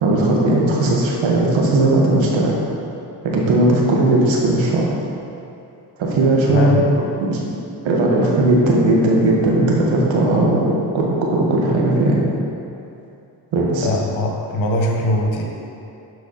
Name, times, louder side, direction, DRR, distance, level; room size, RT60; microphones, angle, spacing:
voice 1, 0.0-2.5 3.2-4.9 6.0-6.8 7.3-7.4 7.8-11.0 11.3-12.2 13.5-13.9, right 2 dB, 75° right, -2 dB, 1.8 m, -17 dB
voice 2, 6.5-6.9 13.8-15.4, left 1 dB, 80° left, 0 dB, 1.5 m, -21 dB
11.5 x 4.8 x 4.2 m, 2.7 s
cardioid pair, 85°, 46 cm